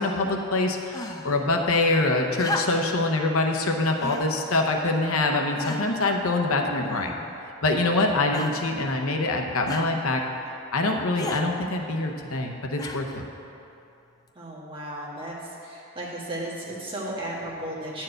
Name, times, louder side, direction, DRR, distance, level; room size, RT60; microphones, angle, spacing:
voice 1, 0.0-7.1 7.6-10.2 10.7-13.2, left 2 dB, 70° left, 2 dB, 0.8 m, -24 dB
sound 1, 0.9-1.4 2.4-3.0 4.0-4.3 5.0-5.1 5.6-6.0 6.9-7.4 8.3-8.7 9.7-9.9 11.2-11.5 12.8-13.2 14.3-14.4, left 2 dB, 15° left, 0.4 m, -34 dB
voice 2, 14.3-15.4 15.6-18.0, right 1 dB, 20° right, -6 dB, 1.6 m, -34 dB
9.9 x 4.6 x 7.7 m, 2.8 s
head